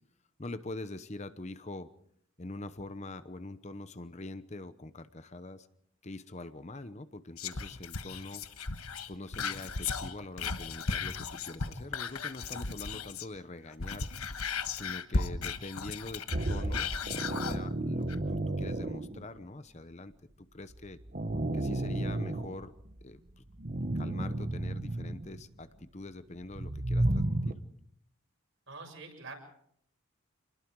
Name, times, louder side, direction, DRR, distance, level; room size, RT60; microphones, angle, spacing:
voice 1, 0.4-1.9 2.4-5.7 6.0-8.4 9.1-14.1 14.7-16.9 17.3-20.1 20.4-21.0 21.5-22.7 23.0-23.4 23.9-27.6, left 2 dB, 30° left, 12 dB, 0.9 m, -44 dB
Whispering, 7.4-13.4 13.7-17.6 18.1-18.2, left 4 dB, 85° left, 1.3 m, -36 dB
sound 1, 16.3-19.4 20.7-23.0 23.5-25.4 26.4-27.5, right 1 dB, 40° right, 1.1 m, -32 dB
voice 2, 28.7-29.3, right 3 dB, 65° right, 2 dB, 7.0 m, -45 dB
27.5 x 20.5 x 4.7 m, 0.67 s
head